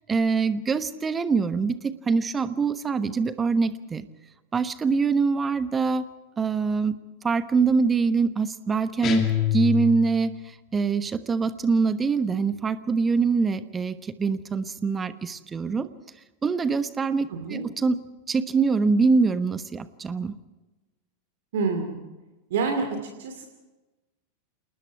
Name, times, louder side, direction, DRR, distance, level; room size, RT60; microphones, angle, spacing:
voice 1, 0.1-4.1 4.5-6.0 6.4-7.0 7.2-15.9 16.4-18.0 18.3-20.4, right 4 dB, 15° right, 13 dB, 1.1 m, -24 dB
sound 1, 9.0-10.4, left 11 dB, 30° left, 2.5 m, -26 dB
voice 2, 17.3-17.6 21.5-22.0 22.5-23.5, right 4 dB, 55° right, 5 dB, 2.5 m, -27 dB
28.0 x 19.5 x 4.7 m, 1.1 s
figure-of-eight pair, 90°, 0 cm